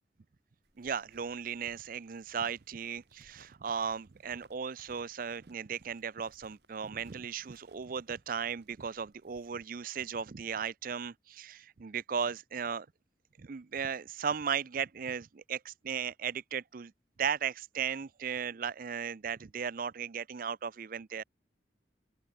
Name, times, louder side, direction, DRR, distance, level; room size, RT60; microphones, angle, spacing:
sound 1, 0.6-9.6, right 2 dB, 65° right, 4.9 m, -66 dB
voice 1, 0.8-12.9 13.4-16.9 17.2-21.2, right 7 dB, 50° right, 0.5 m, -36 dB
open air
head